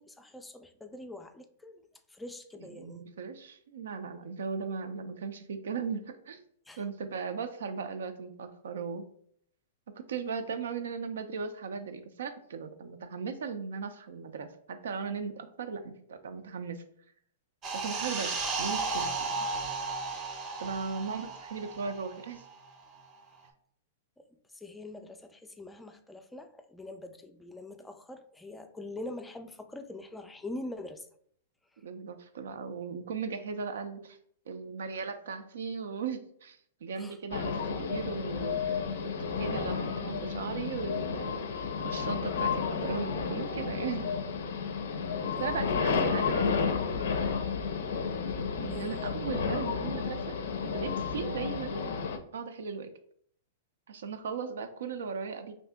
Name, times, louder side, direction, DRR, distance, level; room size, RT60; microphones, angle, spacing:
voice 1, 0.0-1.8 2.1-3.0 6.7-6.8 24.5-31.1 37.0-37.2 45.3-45.6 48.7-49.1, left 2 dB, 10° left, 7 dB, 0.3 m, -44 dB
voice 2, 2.7-6.4 6.8-9.0 9.9-16.8 17.7-19.5 20.6-22.4 31.8-34.2 34.5-44.2 45.3-47.1 48.6-50.4 50.7-51.9 52.3-52.9 53.9-55.5, right 5 dB, 80° right, 9 dB, 0.4 m, -37 dB
sound 1, 17.6-22.7 23.0-23.2, right 3 dB, 30° right, 0.6 m, -34 dB
sound 2, 37.3-52.2, left 5 dB, 75° left, 0.4 m, -32 dB
2.7 x 2.6 x 3.4 m, 0.65 s
hypercardioid pair, 125°, 0 cm